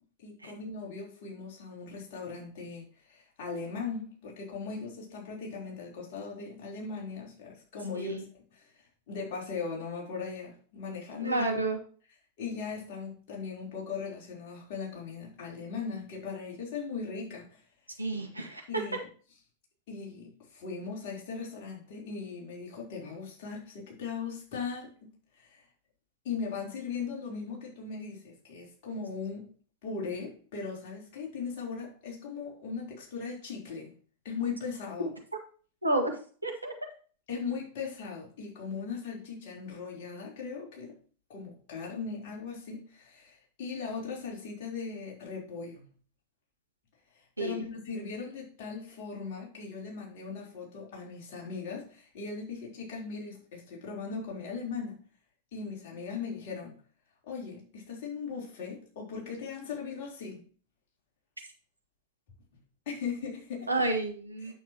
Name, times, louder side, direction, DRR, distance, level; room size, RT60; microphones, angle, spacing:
voice 1, 0.2-8.2 8.5-8.7 9.1-11.5 12.4-17.6 18.7-19.0 19.9-25.1 25.4-25.6 26.2-29.5 29.8-33.9 34.2-35.1 37.3-41.0 41.3-45.9 47.4-55.0 55.5-56.8 57.3-60.4 62.9-63.7 64.4-64.5, left 5 dB, 50° left, -2 dB, 3.6 m, -39 dB
voice 2, 11.2-11.8 18.0-18.6 35.0-35.1 35.8-36.1 36.4-36.7 47.4-47.6 63.7-64.5, right 2 dB, 85° right, 3 dB, 1.6 m, -30 dB
9.0 x 7.3 x 2.9 m, 0.41 s
figure-of-eight pair, 90°, 0 cm